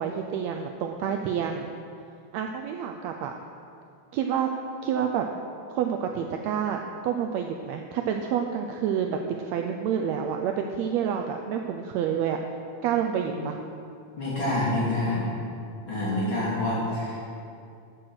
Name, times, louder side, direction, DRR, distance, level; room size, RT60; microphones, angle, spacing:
voice 1, 0.0-1.7 2.3-3.3 4.1-4.5 4.8-5.3 5.7-12.4 12.8-13.6, right 8 dB, 80° right, 4 dB, 1.6 m, -28 dB
voice 2, 14.2-15.2 15.9-17.2, left 1 dB, 40° left, -7 dB, 3.6 m, -27 dB
13.0 x 6.4 x 6.1 m, 2.5 s
omnidirectional pair, 3.5 m